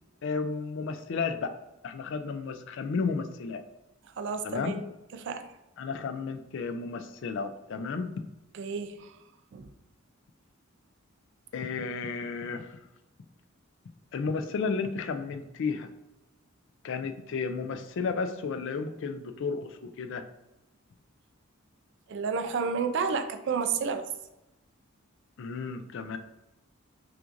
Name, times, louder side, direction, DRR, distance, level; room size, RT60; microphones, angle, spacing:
voice 1, 0.2-1.5 1.8-3.6 4.4-4.8 5.8-8.1 11.5-12.8 14.1-15.9 16.8-20.2 25.4-26.2, left 4 dB, 60° left, 0.4 m, -33 dB
voice 2, 4.2-4.8 5.1-5.5 8.5-9.1 9.5-9.7 22.1-24.1, right 5 dB, 60° right, 0.4 m, -31 dB
5.8 x 2.5 x 2.5 m
head